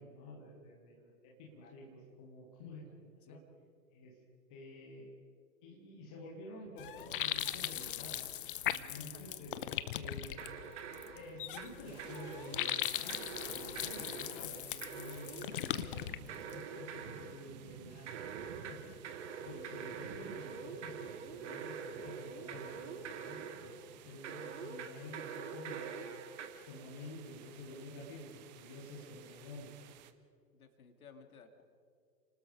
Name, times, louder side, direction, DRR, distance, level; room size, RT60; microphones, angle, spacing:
voice 1, 0.0-3.4 3.9-4.1 4.5-5.1 5.6-8.2 8.7-9.6 9.9-10.4 11.1-18.9 19.4-23.7 24.0-26.1 26.7-29.7, left 1 dB, 5° left, -1 dB, 0.4 m, -50 dB
sound 1, 6.8-16.6, left 11 dB, 35° left, 0.8 m, -39 dB
voice 2, 8.8-9.4 30.5-31.6, left 5 dB, 55° left, 7 dB, 2.7 m, -57 dB
sound 2, 10.4-11.7 12.0-12.7 13.1-14.4 14.8-15.8 16.3-17.4 18.1-23.7 24.2-26.5, right 6 dB, 45° right, 2.3 m, -45 dB
sound 3, 11.8-30.1, right 11 dB, 25° right, 1.0 m, -56 dB
29.0 x 19.5 x 5.0 m, 2.4 s
figure-of-eight pair, 120°, 49 cm